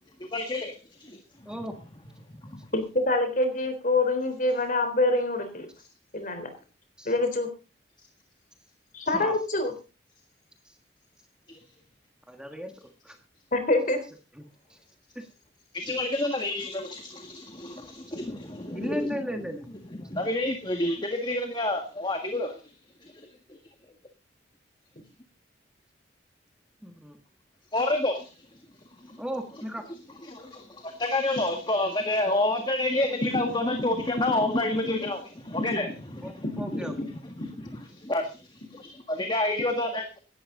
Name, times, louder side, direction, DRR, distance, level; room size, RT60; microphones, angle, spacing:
voice 1, 0.2-1.2 11.5-11.6 15.7-19.1 19.9-22.6 23.0-23.2 27.7-28.3 29.0-29.2 30.3-36.5 37.9-40.2, left 2 dB, 25° left, 4 dB, 1.8 m, -29 dB
voice 2, 2.7-5.7 6.1-6.5 7.1-7.5 8.9-9.7 13.5-14.0, left 2 dB, 45° left, 8 dB, 3.8 m, -25 dB
voice 3, 12.3-13.2 14.4-14.5 14.7-14.8 15.1-15.3 18.7-19.6 26.8-27.2 29.2-29.8 36.2-36.9, equal, 5° right, 5 dB, 1.6 m, -36 dB
17.0 x 12.5 x 3.8 m, 0.33 s
head